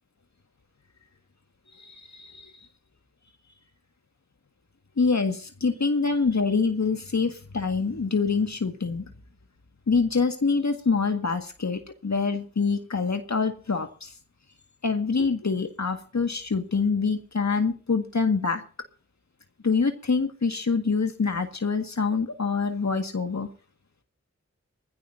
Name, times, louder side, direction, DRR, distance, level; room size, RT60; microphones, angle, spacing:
voice 1, 1.7-2.7 5.0-9.1 9.9-14.1 14.8-18.6 19.6-23.5, left 4 dB, 70° left, 6 dB, 1.8 m, -25 dB
22.5 x 15.5 x 2.7 m, 0.39 s
wide cardioid pair, 50°, 29 cm